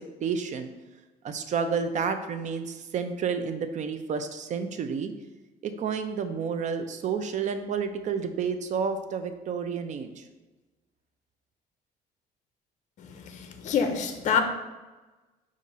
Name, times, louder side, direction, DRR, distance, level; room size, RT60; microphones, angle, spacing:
voice 1, 0.2-0.7 1.2-5.1 5.6-10.2, right 6 dB, 45° right, 8 dB, 0.5 m, -30 dB
voice 2, 13.6-14.4, left 6 dB, 45° left, 6 dB, 0.5 m, -24 dB
5.2 x 2.5 x 4.1 m, 1.2 s
cardioid pair, 110°, 17 cm